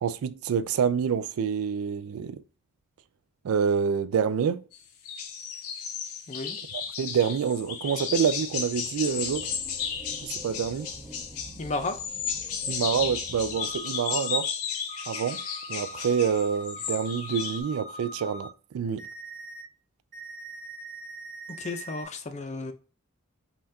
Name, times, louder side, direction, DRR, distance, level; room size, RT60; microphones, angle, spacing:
voice 1, 0.0-2.4 3.4-4.6 7.0-9.5 10.2-10.9 12.7-14.5 15.1-15.4 15.7-19.1, right 7 dB, 80° right, 0.3 m, -27 dB
sound 1, 4.7-4.8 5.0-17.6, left 7 dB, 90° left, 0.7 m, -34 dB
sound 2, 8.0-13.8, right 1 dB, 20° right, 0.5 m, -48 dB
voice 2, 11.6-12.0 21.6-22.7, left 3 dB, 35° left, 0.5 m, -33 dB
sound 3, 13.5-14.4 14.9-18.5 19.0-19.6 20.1-22.0, right 1 dB, 40° right, 1.2 m, -42 dB
5.4 x 2.3 x 2.7 m
head